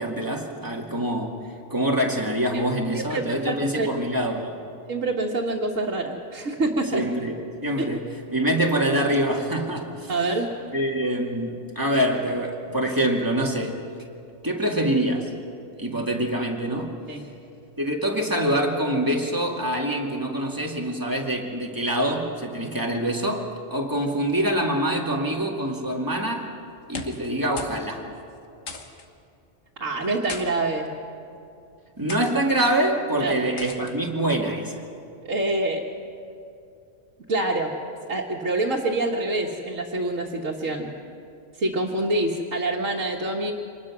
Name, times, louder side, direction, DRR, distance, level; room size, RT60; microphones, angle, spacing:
voice 1, 0.0-1.4 1.7-4.6 6.9-8.0 8.3-10.1 10.7-13.8 14.4-15.3 15.8-17.0 17.8-26.5 26.9-28.0 32.0-34.7, right 1 dB, 15° right, 0 dB, 2.2 m, -25 dB
voice 2, 2.9-3.9 4.9-7.0 7.8-7.9 10.1-10.5 17.1-17.2 29.8-30.9 33.2-33.3 35.2-35.8 37.3-37.7 38.1-40.9 41.6-43.5, right 2 dB, 75° right, -4 dB, 1.9 m, -26 dB
sound 1, 26.8-27.3 27.6-27.8 28.1-28.2 28.7-29.1 30.0-30.5 31.2-31.5 32.1-32.3 33.6-33.9, left 4 dB, 85° left, 1.8 m, -37 dB
25.0 x 20.0 x 6.1 m, 2.6 s
omnidirectional pair, 1.3 m